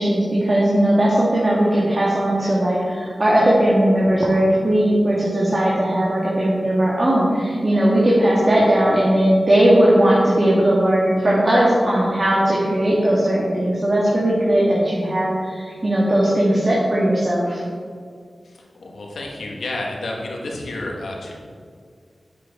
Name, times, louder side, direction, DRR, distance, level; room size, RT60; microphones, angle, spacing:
voice 1, 0.0-17.6, right 1 dB, 45° right, -6 dB, 1.9 m, -18 dB
voice 2, 18.4-21.3, left 2 dB, 90° left, -1 dB, 1.4 m, -30 dB
8.5 x 7.5 x 3.6 m, 2.1 s
cardioid pair, 45°, 0 cm